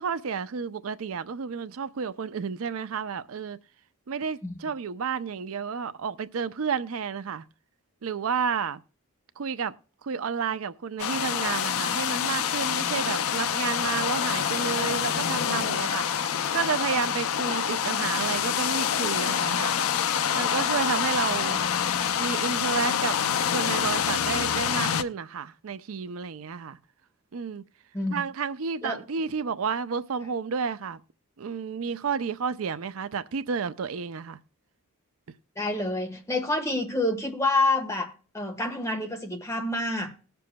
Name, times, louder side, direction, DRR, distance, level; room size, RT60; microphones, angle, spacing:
voice 1, 0.0-3.6 4.1-7.4 8.0-8.8 9.4-9.7 10.0-19.7 20.3-21.6 22.2-23.2 23.5-26.8 27.3-27.6 28.1-31.0 31.4-34.4, right 6 dB, 75° right, 0.5 m, -31 dB
sound 1, 11.0-25.0, left 8 dB, 75° left, 0.5 m, -26 dB
voice 2, 35.6-40.1, left 2 dB, 15° left, 1.3 m, -28 dB
19.5 x 6.8 x 2.2 m
head